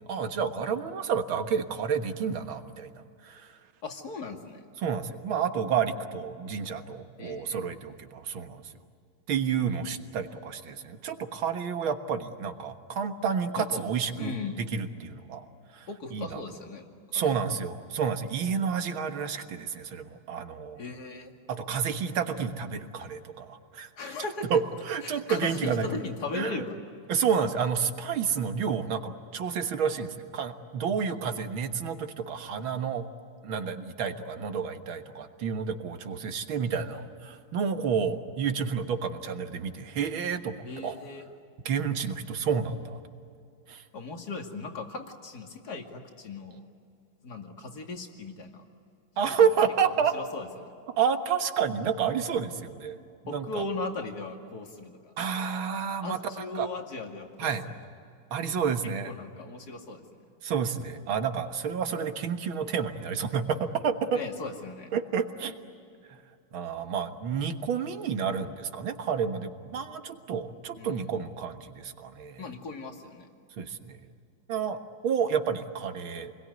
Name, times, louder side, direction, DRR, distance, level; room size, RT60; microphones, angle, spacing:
voice 1, 0.1-3.5 4.8-8.6 9.3-15.4 16.1-16.4 17.1-20.8 21.5-26.0 26.3-26.7 27.1-33.1 33.4-41.0 41.7-43.0 43.7-43.8 49.2-50.2 51.0-53.0 53.2-53.7 55.2-56.7 57.4-57.7 58.3-59.1 60.4-64.2 64.9-65.5 66.5-72.5 73.6-73.9 74.5-76.3, right 6 dB, 85° right, 7 dB, 2.3 m, -30 dB
voice 2, 3.8-4.7 7.2-7.6 13.6-13.8 14.2-14.6 15.9-16.8 17.1-17.5 20.8-21.3 24.0-24.5 25.0-26.8 27.0-27.2 31.0-31.3 40.6-41.2 43.9-46.6 47.2-48.6 49.2-49.5 49.8-50.7 53.3-55.1 56.0-57.7 58.8-60.2 64.1-64.9 70.8-71.1 72.4-73.3, left 3 dB, 50° left, 3 dB, 2.9 m, -38 dB
28.5 x 21.5 x 9.6 m, 2.4 s
omnidirectional pair, 2.1 m